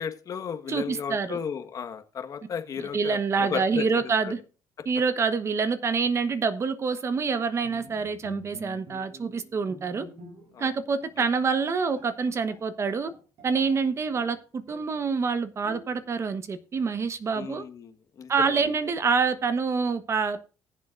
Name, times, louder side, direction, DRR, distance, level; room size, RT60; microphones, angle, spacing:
voice 1, 0.0-4.3 10.5-10.7 11.2-11.3 17.3-18.7, left 7 dB, 50° left, 1.4 m, -34 dB
voice 2, 0.7-1.4 2.8-4.4 4.8-10.1 10.6-13.1 13.4-17.6 18.3-20.4, right 5 dB, 35° right, 1.1 m, -26 dB
Bowed string instrument, 7.6-10.7 11.0-11.2 11.7-11.8 12.0-13.9 14.2-15.0 15.6-16.2, right 1 dB, 65° right, 5.0 m, -47 dB
19.5 x 7.4 x 2.5 m
cardioid pair, 105°, 8 cm